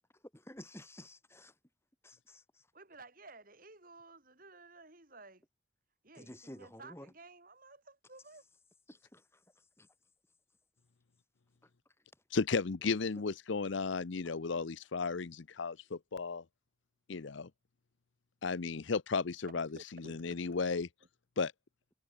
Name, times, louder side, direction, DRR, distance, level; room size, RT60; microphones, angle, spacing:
voice 1, 0.3-1.5 2.0-2.7 6.1-7.1 8.9-9.4 9.8-9.9 11.6-11.7, left 1 dB, 15° left, 5.8 m, -52 dB
voice 2, 2.7-5.4 6.0-8.4 19.7-20.4, right 3 dB, 45° right, 4.8 m, -55 dB
voice 3, 12.3-16.4 17.1-17.5 18.4-20.9 21.4-21.5, left 4 dB, 70° left, 0.7 m, -34 dB
head